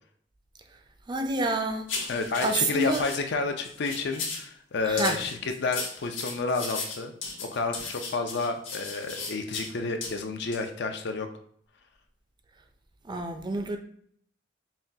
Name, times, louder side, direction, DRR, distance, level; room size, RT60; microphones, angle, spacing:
voice 1, 1.1-1.9 2.4-3.0 4.9-5.2 13.1-13.8, right 2 dB, 25° right, 0.4 m, -28 dB
sound 1, 1.9-3.2 3.6-4.5 5.0-9.7 10.0-10.1 10.5-10.7, left 4 dB, 80° left, 1.2 m, -35 dB
voice 2, 2.1-7.1 7.5-11.3, left 4 dB, 65° left, 0.5 m, -30 dB
5.7 x 2.2 x 2.7 m
head